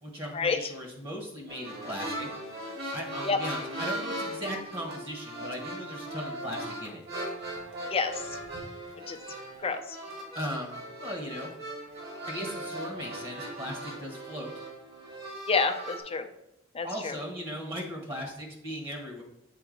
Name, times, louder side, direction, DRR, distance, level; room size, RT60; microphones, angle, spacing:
voice 1, 0.0-2.3 2.9-7.0 10.3-11.5 12.2-14.5 16.8-19.2, equal, 25° right, 0 dB, 1.2 m, -38 dB
sound 1, 1.5-16.0, right 1 dB, 50° right, 2.0 m, -38 dB
voice 2, 9.6-10.0 15.5-16.3 16.7-17.2, left 4 dB, 30° left, 7 dB, 0.5 m, -28 dB
7.9 x 3.9 x 3.9 m, 0.84 s
head